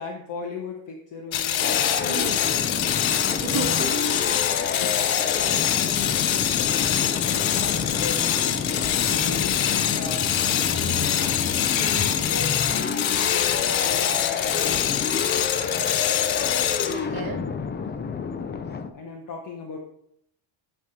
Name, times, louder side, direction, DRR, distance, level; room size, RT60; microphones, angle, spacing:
voice 1, 0.0-3.0 3.8-4.3 5.1-11.3 12.0-16.0 18.4-19.8, left 4 dB, 40° left, -1 dB, 1.1 m, -39 dB
sound 1, 1.3-17.1, left 10 dB, 70° left, 0.8 m, -24 dB
sound 2, 1.6-18.9, left 5 dB, 25° left, 0.4 m, -29 dB
voice 2, 2.0-2.4 3.1-4.0 9.2-9.3 11.8-12.2 16.9-17.4, right 4 dB, 50° right, 2 dB, 1.5 m, -32 dB
sound 3, 10.0-13.4, equal, ahead, 2.0 m, -39 dB
9.5 x 3.5 x 5.7 m, 0.71 s
cardioid pair, 165°, 48 cm